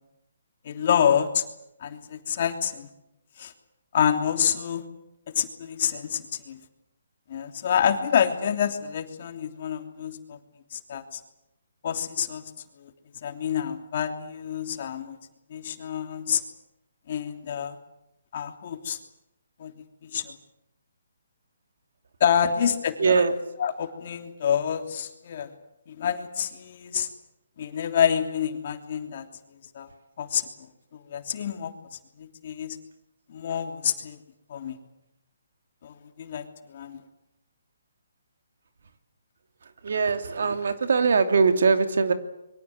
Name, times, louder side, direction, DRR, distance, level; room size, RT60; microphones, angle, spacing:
voice 1, 0.6-1.4 1.8-2.9 3.4-3.5 3.9-4.8 5.3-6.6 7.3-10.4 10.7-11.2 11.8-12.4 13.2-15.2 15.5-16.4 17.1-17.8 18.3-19.0 19.6-19.7 20.1-20.4 22.2-23.2 23.6-25.5 25.9-27.1 27.6-29.3 29.7-29.9 30.2-30.5 31.1-31.7 32.2-32.8 33.3-34.2 34.5-34.8 35.8-37.0, left 8 dB, 45° left, 6 dB, 3.0 m, -27 dB
voice 2, 23.0-23.4 39.6-42.1, right 5 dB, 70° right, 8 dB, 2.8 m, -22 dB
26.0 x 23.0 x 7.9 m, 0.88 s
hypercardioid pair, 160°, 0 cm